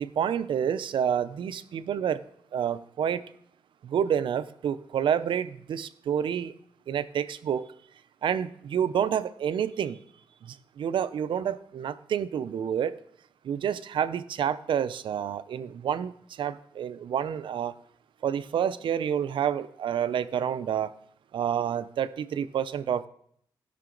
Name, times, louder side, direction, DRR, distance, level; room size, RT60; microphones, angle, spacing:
voice 1, 0.0-2.2 2.5-3.2 3.8-6.5 6.9-7.6 8.2-10.0 10.5-13.0 13.4-17.7 18.2-20.9 21.3-23.1, right 8 dB, 70° right, 15 dB, 0.5 m, -28 dB
15.5 x 5.9 x 3.8 m, 0.67 s
cardioid pair, 110°, 9 cm